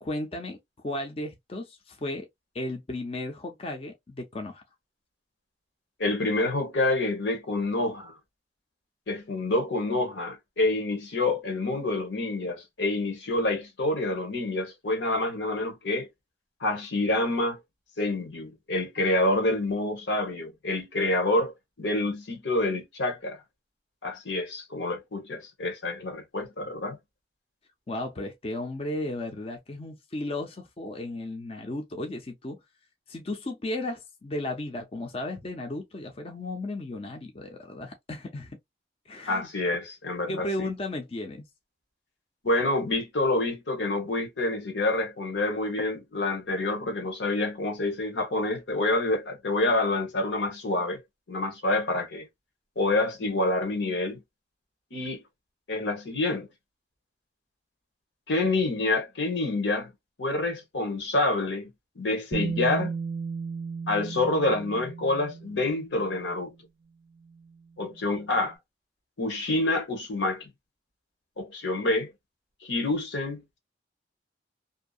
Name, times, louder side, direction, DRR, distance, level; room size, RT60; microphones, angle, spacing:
voice 1, 0.0-0.6 0.8-2.3 2.5-4.6 27.9-32.6 33.1-38.6 39.1-39.5 40.3-41.4, left 1 dB, 35° left, 0.5 m, -34 dB
voice 2, 6.0-8.2 9.1-16.1 16.6-17.6 18.0-23.4 24.0-27.0 39.3-40.7 42.4-51.0 51.3-52.3 52.8-54.2 54.9-55.2 55.7-56.5 58.3-59.9 60.2-61.7 62.0-62.9 63.9-66.5 67.8-68.6 69.2-70.5 71.4-72.1 72.6-73.4, left 2 dB, 90° left, 1.0 m, -27 dB
Bass guitar, 62.3-66.3 67.4-67.5, right 5 dB, 35° right, 0.5 m, -34 dB
2.6 x 2.0 x 2.3 m
head